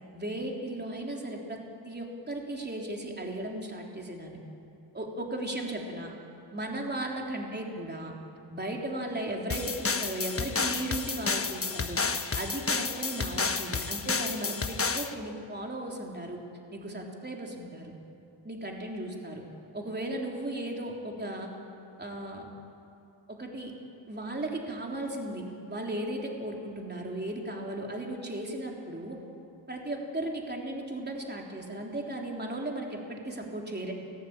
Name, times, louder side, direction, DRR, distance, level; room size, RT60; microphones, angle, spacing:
voice 1, 0.1-1.6 1.8-4.4 4.9-6.1 6.5-8.1 8.5-12.0 12.3-16.4 16.7-17.9 18.4-19.4 19.7-21.5 22.0-22.5 23.3-23.7 24.1-29.2 29.7-33.9, right 1 dB, 20° right, 0 dB, 3.6 m, -36 dB
sound 1, 9.5-15.1, left 4 dB, 30° left, 1.2 m, -31 dB
29.0 x 21.0 x 8.9 m, 2.7 s
wide cardioid pair, 125°, 47 cm